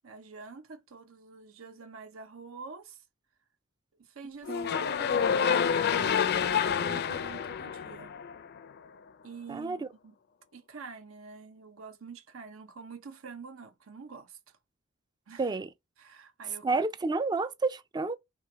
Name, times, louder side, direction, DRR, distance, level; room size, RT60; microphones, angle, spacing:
voice 1, 0.0-3.0 4.0-8.1 9.2-10.1 10.5-14.6 15.3-15.5 16.0-16.8, right 4 dB, 85° right, 0.7 m, -47 dB
sound 1, 4.4-8.6, left 7 dB, 55° left, 0.4 m, -28 dB
voice 2, 9.5-9.9 15.4-15.7 16.6-18.2, right 3 dB, 20° right, 0.3 m, -30 dB
3.3 x 3.1 x 4.8 m
head